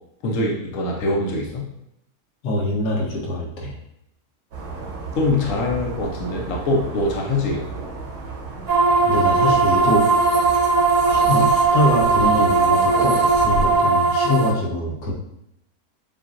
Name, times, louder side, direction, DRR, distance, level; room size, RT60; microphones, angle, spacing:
voice 1, 0.2-1.7 5.2-7.7, left 2 dB, 60° left, 0 dB, 1.0 m, -23 dB
voice 2, 2.4-3.7 9.0-10.0 11.0-15.1, left 1 dB, 80° left, -2 dB, 1.5 m, -24 dB
sound 1, 4.5-13.8, right 3 dB, 75° right, 1.5 m, -33 dB
sound 2, 8.7-14.5, right 4 dB, 30° right, 0.9 m, -18 dB
7.3 x 2.5 x 2.5 m, 0.81 s
omnidirectional pair, 1.7 m